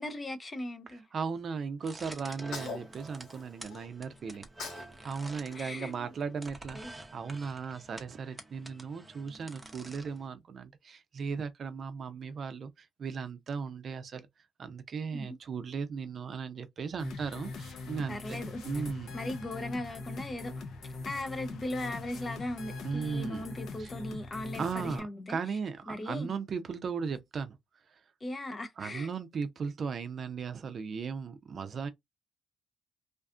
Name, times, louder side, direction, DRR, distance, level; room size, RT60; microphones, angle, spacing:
voice 1, 0.0-1.1 5.5-6.1 6.7-7.0 15.1-15.4 18.1-18.6 19.1-20.5 21.0-25.4 25.9-26.3 28.2-29.1, left 1 dB, 30° left, 0.5 m, -38 dB
voice 2, 1.1-4.5 5.0-6.8 7.1-14.3 14.6-18.4 18.6-19.2 22.8-23.5 23.8-23.9 24.6-27.6 28.8-31.9, right 5 dB, 50° right, 0.4 m, -37 dB
sound 1, 1.8-10.3, right 1 dB, 15° right, 0.7 m, -49 dB
Sneeze, 2.3-3.9 4.3-4.9 5.2-6.7, left 5 dB, 90° left, 1.2 m, -44 dB
sound 2, 17.0-25.0, left 3 dB, 75° left, 0.6 m, -42 dB
2.5 x 2.3 x 2.4 m
cardioid pair, 90°, 0 cm